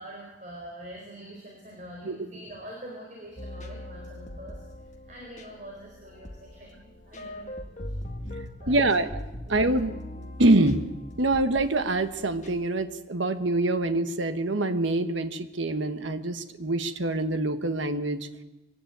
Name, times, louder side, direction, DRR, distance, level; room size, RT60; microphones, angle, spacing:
voice 1, 0.0-7.9 8.2-8.9 9.4-9.8, right 1 dB, 40° right, -1 dB, 4.6 m, -45 dB
sound 1, 3.4-12.6, left 1 dB, 40° left, 2.1 m, -40 dB
voice 2, 8.7-9.1 9.5-9.9 10.4-10.8 11.2-18.3, right 2 dB, 80° right, 10 dB, 1.3 m, -25 dB
22.0 x 17.0 x 9.3 m, 0.98 s
head